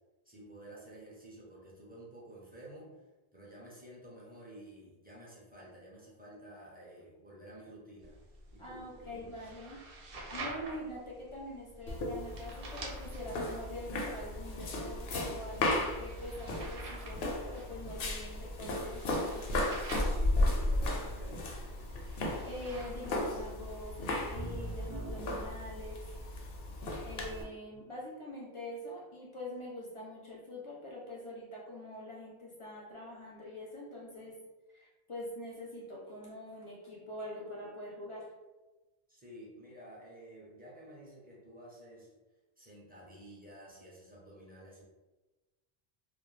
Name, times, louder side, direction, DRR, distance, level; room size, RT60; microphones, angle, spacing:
voice 1, 0.3-2.9 3.3-8.2 8.5-9.4 19.9-21.6 27.1-27.2 27.7-27.8 37.5-37.6 39.1-42.2 42.6-44.8, right 1 dB, 10° right, -6 dB, 0.5 m, -51 dB
sound 1, 8.0-25.5, right 2 dB, 70° right, 0.7 m, -47 dB
voice 2, 8.6-19.5 22.5-26.0 27.0-34.3 34.7-38.3, left 1 dB, 40° left, -4 dB, 0.5 m, -44 dB
sound 2, 11.9-27.4, left 1 dB, 80° left, 0.8 m, -35 dB
2.2 x 2.1 x 3.1 m, 1.1 s
omnidirectional pair, 1.0 m